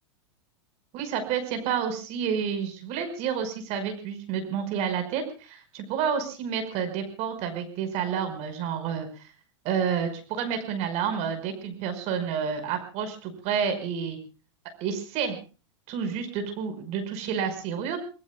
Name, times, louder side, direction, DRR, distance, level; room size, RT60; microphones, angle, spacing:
voice 1, 0.9-9.2 9.6-14.2 14.8-15.4 15.9-18.0, right 7 dB, 45° right, 7 dB, 5.4 m, -29 dB
30.0 x 20.5 x 2.4 m, 0.35 s
hypercardioid pair, 100°, 15 cm